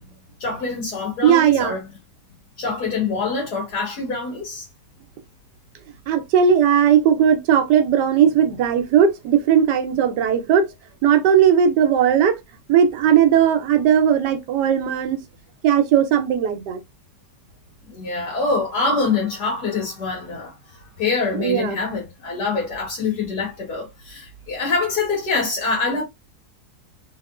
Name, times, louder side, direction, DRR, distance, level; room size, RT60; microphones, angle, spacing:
voice 1, 0.4-1.8 2.6-4.7 17.9-20.5 21.0-26.0, left 4 dB, 70° left, 2.0 m, -25 dB
voice 2, 1.2-1.8 6.1-10.7 11.0-12.4 12.7-15.2 15.6-16.8 21.3-21.8, right 8 dB, 85° right, 1.3 m, -17 dB
3.5 x 2.9 x 2.4 m
omnidirectional pair, 1.8 m